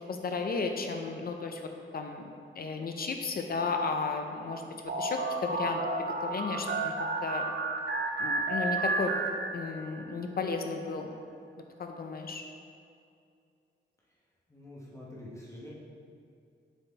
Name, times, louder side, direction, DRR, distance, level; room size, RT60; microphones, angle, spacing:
voice 1, 0.1-1.6 1.9-2.3 2.5-7.4 8.2-9.1 9.5-11.1 11.8-12.4, left 4 dB, 50° left, 4 dB, 0.5 m, -34 dB
sound 1, 4.9-10.0, right 2 dB, 60° right, 0.7 m, -32 dB
voice 2, 14.5-15.7, left 1 dB, 15° left, -6 dB, 1.1 m, -46 dB
6.9 x 4.3 x 4.0 m, 2.4 s
wide cardioid pair, 140°, 20 cm